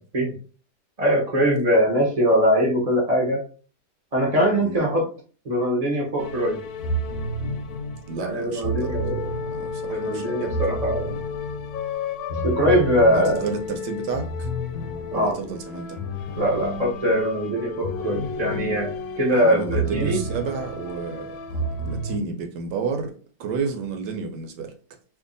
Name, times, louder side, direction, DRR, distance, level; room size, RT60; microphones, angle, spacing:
voice 1, 1.0-3.4 4.1-5.1 5.4-6.6 8.2-9.3 9.9-11.1 12.3-13.4 15.1-15.3 16.4-18.9 19.2-20.2, equal, 30° right, 0.8 m, -22 dB
sound 1, 6.2-22.2, left 1 dB, 70° left, 1.0 m, -30 dB
voice 2, 8.1-9.0 9.5-10.4 13.1-14.5 15.1-16.0 19.3-23.1 23.4-24.7, right 5 dB, 80° right, 1.3 m, -31 dB
2.8 x 2.6 x 3.8 m
omnidirectional pair, 1.8 m